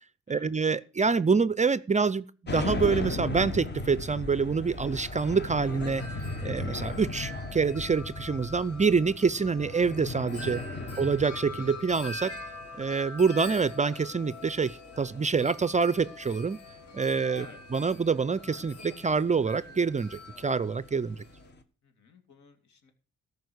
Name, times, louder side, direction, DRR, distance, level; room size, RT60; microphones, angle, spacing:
voice 1, 0.3-6.0 6.4-10.6 11.0-12.3 12.8-16.6 16.9-17.5 17.7-21.2, right 5 dB, 25° right, 0.4 m, -26 dB
sound 1, 2.5-21.6, left 2 dB, 35° left, 1.5 m, -38 dB
Wind chime, 4.6-21.5, left 2 dB, 55° left, 3.3 m, -45 dB
voice 2, 10.5-11.0 17.3-17.6 21.8-22.9, left 5 dB, 70° left, 2.6 m, -53 dB
14.0 x 5.2 x 7.9 m
cardioid pair, 85°, 30 cm